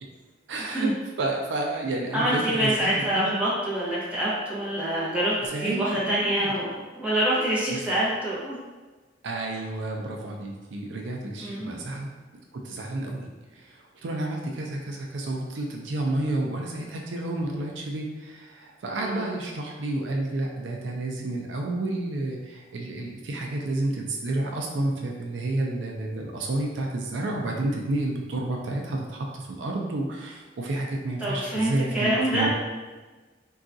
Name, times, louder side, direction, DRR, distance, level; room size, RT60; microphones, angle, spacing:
voice 1, 0.5-3.4 5.5-6.6 7.7-7.8 9.2-12.1 12.6-13.3 13.6-13.7 14.0-32.5, right 2 dB, 75° right, 1 dB, 0.4 m, -30 dB
voice 2, 2.1-5.3 5.6-8.6 11.4-11.7 19.0-19.3 31.2-32.5, right 1 dB, 5° right, -9 dB, 0.9 m, -26 dB
3.7 x 2.3 x 2.6 m, 1.3 s
head